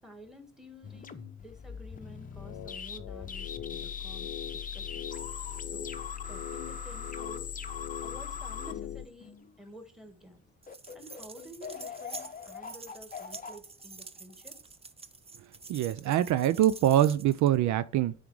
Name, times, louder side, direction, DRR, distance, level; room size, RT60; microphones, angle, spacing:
voice 1, 0.0-5.1 5.7-5.9 6.3-7.5 8.0-10.4 10.9-14.6, equal, ahead, 1.6 m, -51 dB
sound 1, 0.8-9.7 10.2-10.4 10.7-14.6, left 6 dB, 30° left, 0.7 m, -42 dB
sound 2, 2.3-9.1, left 12 dB, 75° left, 0.7 m, -40 dB
sound 3, 10.6-17.6, right 4 dB, 20° right, 0.6 m, -48 dB
voice 2, 15.7-18.1, right 12 dB, 70° right, 0.5 m, -24 dB
9.0 x 3.7 x 4.7 m
cardioid pair, 90°, 30 cm